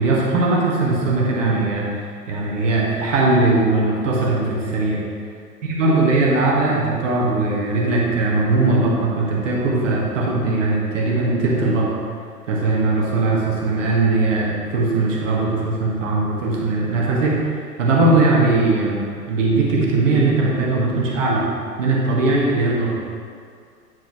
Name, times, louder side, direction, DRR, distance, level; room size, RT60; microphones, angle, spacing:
voice 1, 0.0-5.0 5.6-11.9 12.5-19.0 19.3-21.5 21.8-23.0, right 2 dB, 50° right, -3 dB, 1.6 m, -19 dB
9.3 x 4.5 x 3.1 m, 2.2 s
figure-of-eight pair, 105°, 48 cm